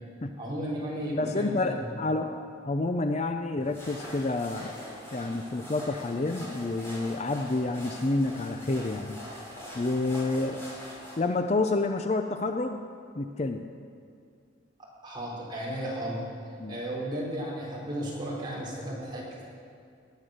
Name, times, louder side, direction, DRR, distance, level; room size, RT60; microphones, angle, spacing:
voice 1, 0.4-1.9 15.0-16.2 16.7-19.4, right 1 dB, 25° right, -6 dB, 4.2 m, -34 dB
voice 2, 1.2-4.7 5.1-9.2 9.7-10.6 11.2-12.8 13.2-13.7 16.6-16.8, left 2 dB, 35° left, 7 dB, 0.5 m, -29 dB
sound 1, 3.6-11.2, left 1 dB, 15° left, 3.7 m, -43 dB
18.5 x 9.7 x 6.5 m, 2.3 s
head